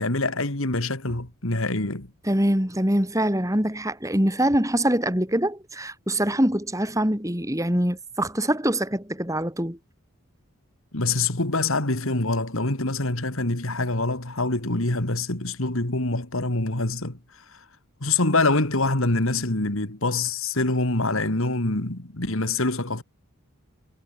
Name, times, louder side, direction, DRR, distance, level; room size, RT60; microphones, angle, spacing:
voice 1, 0.0-2.1 10.9-17.2 18.0-23.0, left 2 dB, 70° left, 2.7 m, -25 dB
voice 2, 2.3-9.8, right 1 dB, 15° right, 3.8 m, -24 dB
head